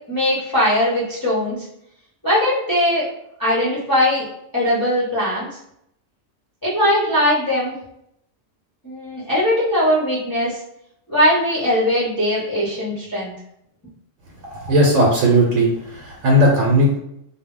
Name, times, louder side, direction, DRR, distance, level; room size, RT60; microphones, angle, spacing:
voice 1, 0.1-1.6 2.2-3.1 3.4-4.3 4.5-5.6 6.6-7.8 8.8-10.6 11.1-13.3, left 1 dB, 25° left, -9 dB, 0.5 m, -20 dB
voice 2, 14.5-17.0, equal, 80° right, -2 dB, 1.0 m, -16 dB
2.2 x 2.1 x 3.6 m, 0.76 s
omnidirectional pair, 1.3 m